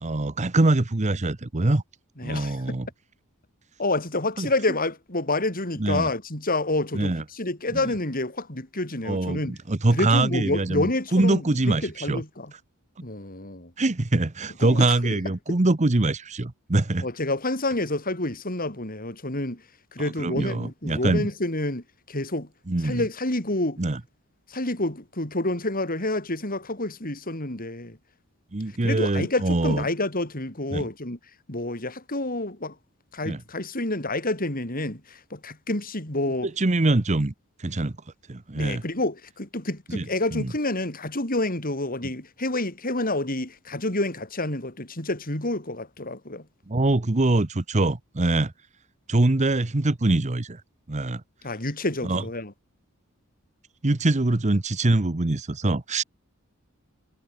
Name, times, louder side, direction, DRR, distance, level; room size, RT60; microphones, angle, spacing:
voice 1, 0.0-1.8 2.2-2.9 4.4-4.5 5.8-6.1 6.9-7.2 7.7-7.8 9.0-12.2 13.8-17.1 20.0-21.3 22.7-23.0 23.8-24.0 28.5-29.8 30.7-30.9 33.2-33.4 36.6-37.3 37.6-37.9 38.3-38.8 39.9-40.1 40.3-40.5 46.7-48.5 49.1-50.6 50.9-51.2 52.0-52.2 53.8-56.0, right 2 dB, 35° right, 0.9 m, -23 dB
voice 2, 2.2-2.8 3.8-9.6 9.9-12.5 13.0-13.7 14.6-15.2 15.5-15.6 17.0-19.6 19.9-22.5 22.8-23.8 24.5-28.0 28.8-31.2 31.5-32.7 33.1-36.5 38.5-46.4 51.4-52.5, left 2 dB, 40° left, 5.8 m, -28 dB
head